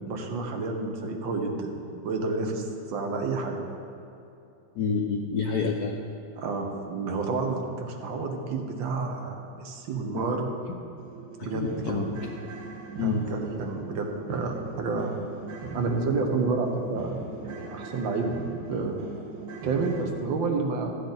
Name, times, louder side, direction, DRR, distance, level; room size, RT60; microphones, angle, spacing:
voice 1, 0.1-1.8 2.0-3.6 6.3-10.5 11.4-12.1 13.0-15.2 15.7-17.2 17.4-18.3 18.7-19.0 19.6-21.0, right 4 dB, 70° right, 3 dB, 1.6 m, -30 dB
voice 2, 4.8-6.0 10.1-10.3 11.5-12.3 13.0-13.2, left 5 dB, 75° left, 2 dB, 0.9 m, -28 dB
sound 1, 10.1-10.2 10.6-10.7 11.0-20.0, right 3 dB, 55° right, 1.6 m, -40 dB
13.0 x 8.5 x 4.0 m, 2.8 s
omnidirectional pair, 2.3 m